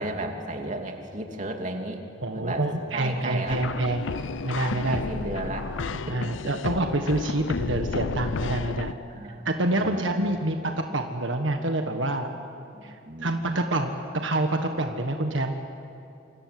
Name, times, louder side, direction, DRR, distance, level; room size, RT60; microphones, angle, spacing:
voice 1, 0.0-2.0 2.3-3.6 4.9-6.3 9.1-9.5 9.7-10.1 12.7-13.4, right 1 dB, 40° right, 3 dB, 2.9 m, -34 dB
voice 2, 2.2-4.1 4.4-5.0 6.1-8.9 9.4-12.3 12.8-12.9 13.2-15.5, right 2 dB, 75° right, 4 dB, 1.6 m, -27 dB
sound 1, 3.5-8.9, left 4 dB, 75° left, 0.6 m, -32 dB
28.0 x 27.0 x 7.9 m, 2.7 s
head